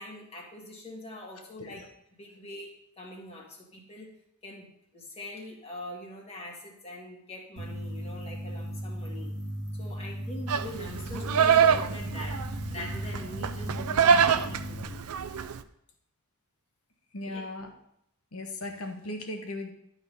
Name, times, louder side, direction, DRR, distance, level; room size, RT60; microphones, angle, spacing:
voice 1, 0.0-1.8 2.1-4.1 4.4-9.3 9.7-12.4 12.7-15.0 17.3-17.4, left 1 dB, 30° left, -1 dB, 2.0 m, -43 dB
sound 1, 7.6-14.8, equal, 55° right, 1.9 m, -37 dB
Livestock farm animals working animals, 10.5-15.6, right 7 dB, 80° right, 0.5 m, -25 dB
voice 2, 17.1-17.7 18.3-19.7, left 2 dB, 70° left, 4 dB, 1.3 m, -37 dB
12.0 x 4.1 x 5.4 m, 0.74 s
head